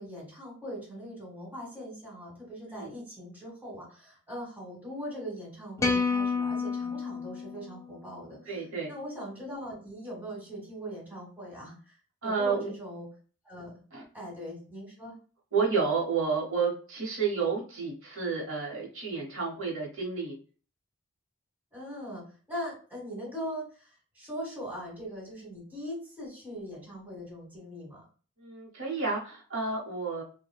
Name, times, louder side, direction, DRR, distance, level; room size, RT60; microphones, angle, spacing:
voice 1, 0.0-8.4 8.9-12.0 12.2-13.1 13.4-13.7 14.1-15.1 21.7-22.2 22.5-28.0, equal, 10° right, -4 dB, 1.4 m, -40 dB
sound 1, 5.8-8.2, left 4 dB, 15° left, 0.3 m, -30 dB
voice 2, 8.5-8.9 12.2-12.7 13.9-14.0 15.5-20.4 28.4-30.2, right 5 dB, 70° right, -2 dB, 0.9 m, -30 dB
3.3 x 2.1 x 2.3 m, 0.39 s
head